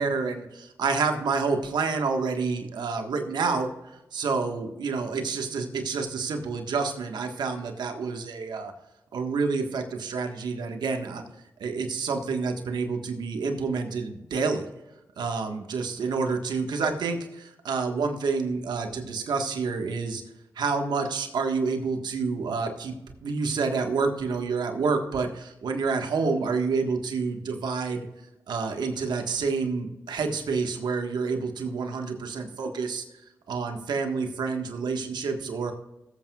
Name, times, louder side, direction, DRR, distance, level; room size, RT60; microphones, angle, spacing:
voice 1, 0.0-8.7 9.1-11.2 11.6-14.7 15.2-20.2 20.5-28.1 28.5-33.0 33.5-35.7, right 4 dB, 80° right, 4 dB, 1.5 m, -28 dB
18.0 x 8.4 x 2.4 m, 0.97 s
supercardioid pair, 45°, 7 cm